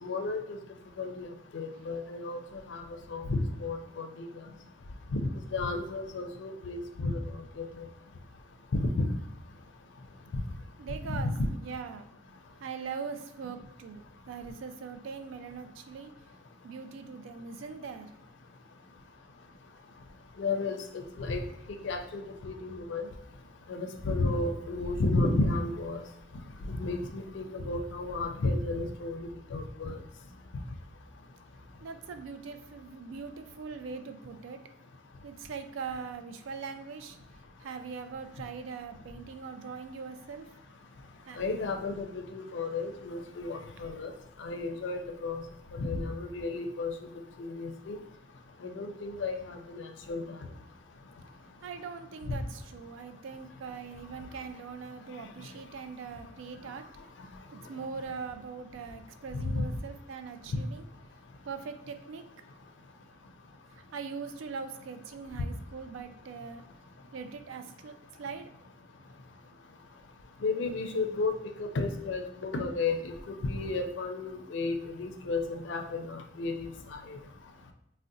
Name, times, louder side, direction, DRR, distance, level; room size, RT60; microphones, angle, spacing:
voice 1, 0.0-0.6 1.0-2.4 2.7-2.8 3.1-4.3 5.2-7.2 7.6-7.8 8.7-9.1 11.0-11.2 20.4-21.4 21.8-23.0 23.7-26.0 26.7-29.2 29.5-30.0 41.4-44.1 44.4-45.4 45.8-46.9 47.4-48.0 48.6-50.2 59.3-59.7 70.4-71.3 71.6-77.2, left 3 dB, 70° left, 5 dB, 0.4 m, -33 dB
voice 2, 10.8-12.2 12.6-16.1 16.6-18.1 31.8-34.6 35.2-37.2 37.6-40.5 41.3-41.4 43.8-43.9 51.6-56.9 57.7-60.9 61.5-62.2 63.7-66.6 67.1-68.5, right 5 dB, 80° right, 8 dB, 0.3 m, -41 dB
sound 1, 27.6-33.9, equal, 40° right, 0.8 m, -56 dB
3.6 x 2.1 x 2.6 m, 0.80 s
head